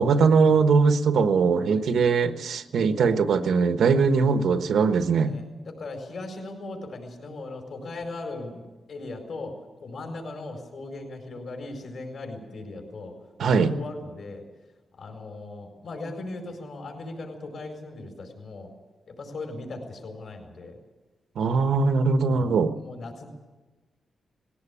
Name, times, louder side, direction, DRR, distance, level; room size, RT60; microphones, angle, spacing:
voice 1, 0.0-5.3 13.4-13.7 21.4-22.7, right 5 dB, 75° right, 9 dB, 1.2 m, -21 dB
voice 2, 1.6-2.1 5.2-13.1 13.4-14.4 15.0-18.7 19.1-20.8 22.2-23.3, left 2 dB, 55° left, 3 dB, 4.7 m, -38 dB
20.0 x 17.0 x 8.5 m, 1.2 s
wide cardioid pair, 175°, 0 cm